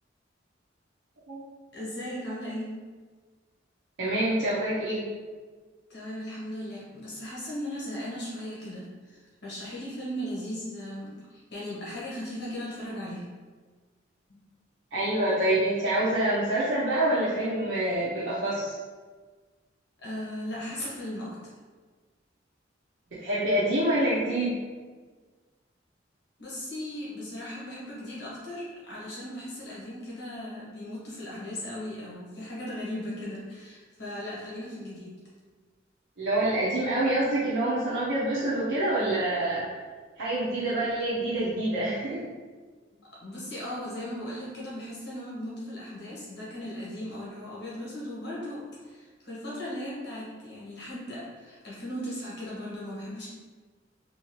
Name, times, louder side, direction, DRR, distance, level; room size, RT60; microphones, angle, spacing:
voice 1, 1.7-2.8 5.9-13.3 14.3-14.4 20.0-21.4 26.4-35.1 42.9-53.3, left 1 dB, 60° left, -7 dB, 1.2 m, -37 dB
voice 2, 4.0-5.0 14.9-18.8 23.2-24.5 36.2-39.6 40.2-42.2, right 1 dB, 75° right, -10 dB, 0.8 m, -26 dB
3.7 x 2.8 x 3.1 m, 1.4 s
head